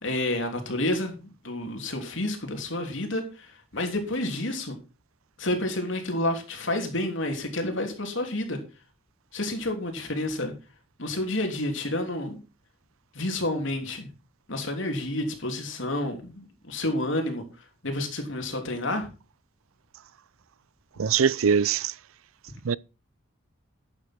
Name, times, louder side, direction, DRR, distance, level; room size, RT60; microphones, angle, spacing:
voice 1, 0.0-4.8 5.4-8.6 9.3-10.5 11.0-12.4 13.1-14.1 14.5-17.4 17.8-19.1, left 1 dB, 65° left, 3.2 m, -29 dB
voice 2, 21.0-21.9 22.6-22.8, right 6 dB, 85° right, 0.5 m, -22 dB
12.0 x 8.8 x 4.6 m
head